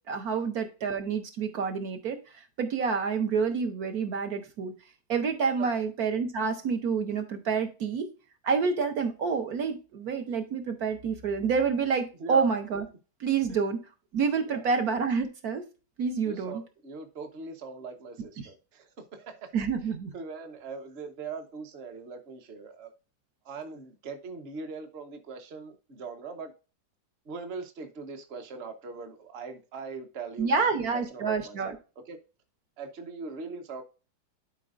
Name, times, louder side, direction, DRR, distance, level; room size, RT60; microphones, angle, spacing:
voice 1, 0.1-2.2 2.6-4.7 5.1-8.1 8.4-12.8 13.2-13.8 14.1-15.6 16.0-16.6 19.5-20.1 30.4-31.7, right 5 dB, 65° right, 1.5 m, -28 dB
voice 2, 12.2-12.5 13.5-13.6 14.4-14.7 16.2-22.9 23.4-26.5 27.2-30.5 30.9-31.7 32.1-32.2 32.8-33.8, right 4 dB, 40° right, 1.2 m, -41 dB
12.0 x 4.6 x 2.5 m
omnidirectional pair, 1.8 m